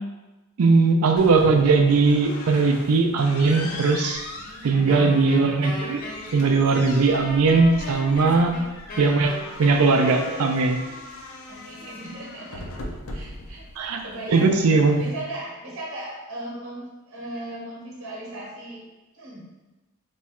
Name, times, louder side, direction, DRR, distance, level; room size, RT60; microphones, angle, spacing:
voice 1, 0.6-4.2 4.6-6.0 6.3-8.6 9.0-10.8 13.8-15.1, right 4 dB, 90° right, 5 dB, 0.4 m, -19 dB
sound 1, 1.2-15.2, left 2 dB, 70° left, 0.5 m, -40 dB
voice 2, 4.3-5.1 8.2-8.6 11.5-18.8 19.1-19.5, right 1 dB, 65° right, -4 dB, 0.9 m, -38 dB
Wind instrument woodwind instrument, 4.9-10.9, left 2 dB, 40° left, 0.8 m, -36 dB
3.0 x 2.3 x 4.2 m, 1.1 s
head